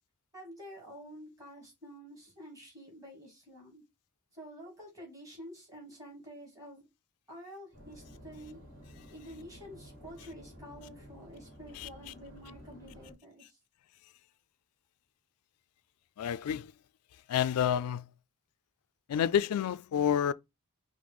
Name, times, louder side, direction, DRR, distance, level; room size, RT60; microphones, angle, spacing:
voice 1, 0.3-3.8 4.3-6.9 7.3-8.6 9.1-13.6, equal, 15° right, 2.8 m, -49 dB
sound 1, 7.7-13.1, equal, 40° right, 1.7 m, -52 dB
voice 2, 16.2-16.7 17.3-18.1 19.1-20.3, left 9 dB, 85° left, 0.3 m, -29 dB
5.2 x 2.1 x 4.8 m
head